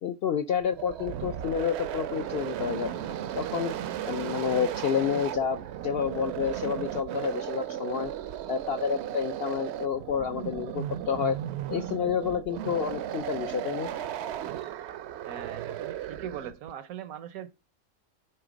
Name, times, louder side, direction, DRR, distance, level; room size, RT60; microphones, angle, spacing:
voice 1, 0.0-2.9 3.3-3.7 4.1-8.1 8.5-11.4 11.7-13.9, left 7 dB, 70° left, 0.6 m, -29 dB
sound 1, 0.6-16.7, right 11 dB, 65° right, 0.7 m, -35 dB
voice 2, 15.2-17.5, right 9 dB, 85° right, 1.2 m, -40 dB
8.9 x 3.4 x 5.0 m
omnidirectional pair, 1.5 m